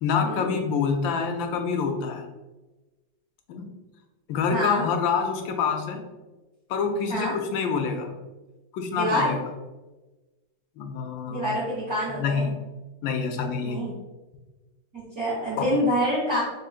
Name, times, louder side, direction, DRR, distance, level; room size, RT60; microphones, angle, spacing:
voice 1, 0.0-2.2 3.5-3.7 4.3-6.0 6.7-8.2 8.7-9.4 10.8-11.5 12.2-12.5 13.0-13.8 15.6-15.7, left 5 dB, 85° left, 4 dB, 1.3 m, -26 dB
voice 2, 4.5-4.8 7.1-7.3 8.9-9.3 11.3-12.5 13.6-13.9 14.9-16.4, equal, 45° right, -12 dB, 1.6 m, -26 dB
3.8 x 3.5 x 2.4 m, 1.1 s
omnidirectional pair, 2.1 m